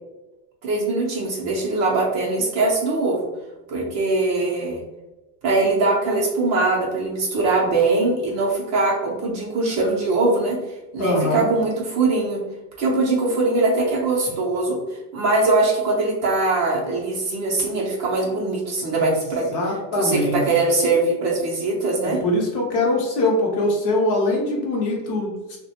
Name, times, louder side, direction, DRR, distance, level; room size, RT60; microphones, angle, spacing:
voice 1, 0.6-3.3 3.7-4.8 5.4-10.6 10.9-12.4 12.8-14.8 15.1-19.5 19.9-22.2, right 3 dB, 35° right, -3 dB, 0.5 m, -21 dB
voice 2, 11.0-11.5 19.5-20.4 22.0-25.6, left 1 dB, 40° left, -1 dB, 0.6 m, -22 dB
2.3 x 2.1 x 2.7 m, 1.1 s
supercardioid pair, 130°, 49 cm